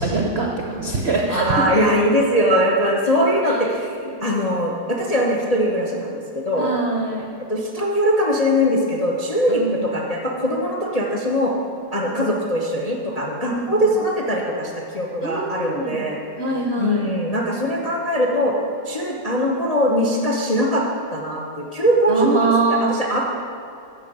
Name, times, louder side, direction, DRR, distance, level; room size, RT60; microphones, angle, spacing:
voice 1, 0.0-1.7 3.5-3.6 6.6-7.3 9.5-9.9 12.0-12.4 13.4-13.9 15.2-16.1 16.4-17.1 22.1-22.9, right 3 dB, 55° right, 0 dB, 0.7 m, -24 dB
voice 2, 1.3-6.7 7.5-11.5 11.9-16.2 16.8-18.6 18.9-20.8 21.1-23.2, equal, 65° left, -2 dB, 0.3 m, -21 dB
12.0 x 4.5 x 7.9 m, 2.5 s
omnidirectional pair, 2.3 m